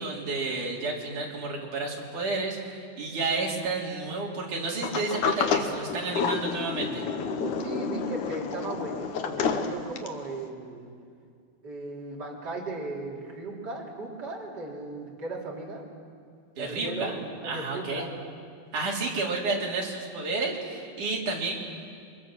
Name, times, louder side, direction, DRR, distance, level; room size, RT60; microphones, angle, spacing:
voice 1, 0.0-7.0 16.6-17.1 17.4-18.1 18.7-21.6, right 3 dB, 50° right, -2 dB, 4.6 m, -31 dB
Sliding door, 4.8-10.3, left 6 dB, 60° left, 2.1 m, -29 dB
voice 2, 7.4-10.9 11.6-15.8 16.6-17.2 17.4-18.1, right 2 dB, 25° right, -3 dB, 3.9 m, -36 dB
29.0 x 24.5 x 7.5 m, 2.2 s
omnidirectional pair, 5.0 m